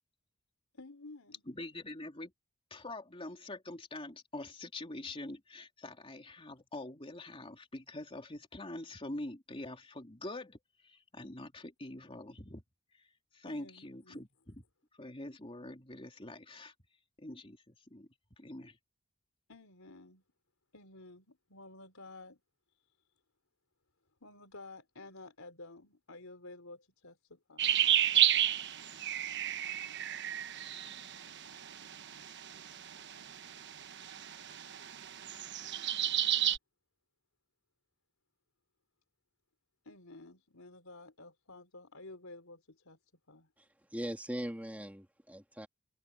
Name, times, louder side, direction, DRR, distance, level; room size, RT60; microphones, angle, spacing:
voice 1, 0.7-1.4 13.5-14.3 19.5-20.2 20.7-22.4 24.2-27.7 39.9-43.0 43.3-43.5, left 2 dB, 80° left, 3.9 m, -52 dB
voice 2, 1.5-2.3 2.7-10.6 10.8-12.6 13.3-14.6 15.0-16.7 17.2-18.1 18.4-18.8, left 2 dB, 25° left, 3.1 m, -45 dB
sound 1, 27.6-36.6, right 10 dB, 55° right, 1.1 m, -32 dB
voice 3, 43.9-45.7, equal, 5° right, 2.1 m, -40 dB
head